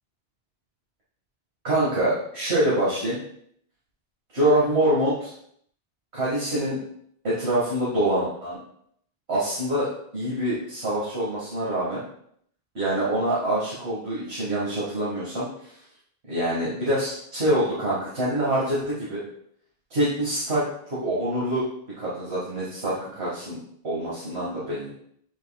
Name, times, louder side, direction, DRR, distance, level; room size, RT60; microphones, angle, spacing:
voice 1, 1.6-3.2 4.3-5.3 6.1-6.8 7.2-8.6 9.3-12.0 12.7-15.5 16.3-19.2 19.9-21.6 22.0-23.6 23.8-24.9, right 1 dB, 85° right, -8 dB, 2.1 m, -25 dB
9.2 x 4.7 x 2.4 m, 0.67 s
omnidirectional pair, 1.1 m